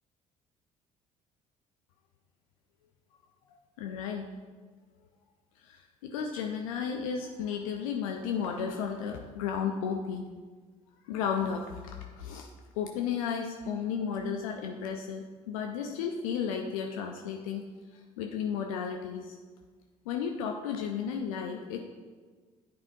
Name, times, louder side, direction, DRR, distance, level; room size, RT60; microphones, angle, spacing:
voice 1, 3.5-4.3 5.6-10.3 11.0-17.6 17.9-19.4 20.1-21.8, left 7 dB, 75° left, 3 dB, 0.5 m, -34 dB
10.0 x 5.1 x 2.6 m, 1.4 s
figure-of-eight pair, 50°, 18 cm